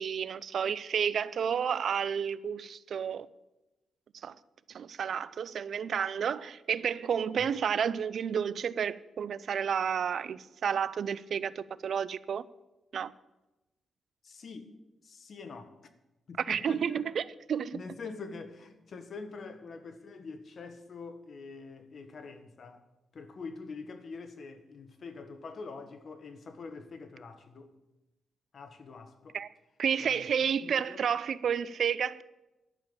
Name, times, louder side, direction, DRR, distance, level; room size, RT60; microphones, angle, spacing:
voice 1, 0.0-3.3 4.2-4.4 4.7-12.4 12.9-13.1 16.4-17.8 29.3-29.5 29.8-32.2, right 7 dB, 70° right, 0.5 m, -31 dB
voice 2, 14.2-14.7 15.0-15.7 16.3-17.1 17.7-22.8 23.1-27.7 28.5-29.4 30.0-31.0, left 4 dB, 55° left, 1.5 m, -45 dB
11.5 x 7.0 x 9.7 m
cardioid pair, 80°, 0 cm